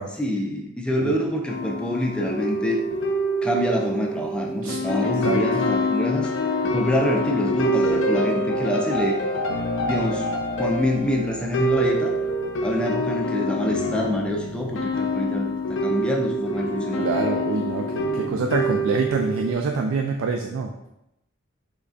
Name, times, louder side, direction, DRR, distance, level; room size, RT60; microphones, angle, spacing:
voice 1, 0.2-2.8 3.4-6.3 6.6-9.2 9.8-10.3 10.5-12.1 12.6-17.0, left 1 dB, 5° left, 0 dB, 0.4 m, -26 dB
sound 1, 1.5-19.5, equal, 65° left, 0.4 m, -26 dB
voice 2, 5.0-5.6 17.0-20.9, right 4 dB, 80° right, 3 dB, 0.3 m, -26 dB
3.8 x 3.2 x 2.4 m, 0.84 s
head